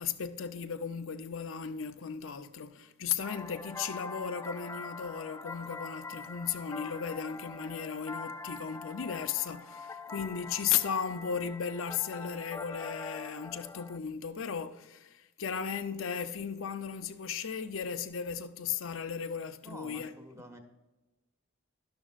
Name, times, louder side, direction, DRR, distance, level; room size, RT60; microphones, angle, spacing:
voice 1, 0.0-20.1, left 7 dB, 80° left, 0.6 m, -35 dB
sound 1, 3.2-14.0, left 4 dB, 15° left, 0.3 m, -44 dB
voice 2, 19.6-20.6, equal, 15° right, 1.1 m, -48 dB
12.0 x 11.5 x 2.4 m
head